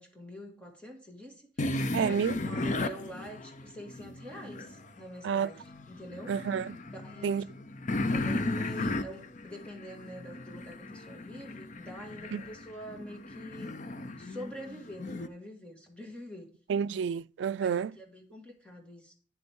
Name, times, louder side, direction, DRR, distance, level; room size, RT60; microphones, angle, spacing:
voice 1, 0.0-1.6 2.0-6.3 6.9-7.5 8.1-13.8 14.2-16.5 17.5-19.1, equal, 5° left, 2.0 m, -46 dB
sound 1, 1.6-4.9 5.3-15.3, left 2 dB, 40° left, 0.6 m, -36 dB
voice 2, 1.9-2.4 5.2-5.5 6.3-6.7 7.2-7.5 12.3-12.4 16.7-17.9, right 7 dB, 75° right, 0.3 m, -29 dB
9.5 x 7.9 x 3.6 m
head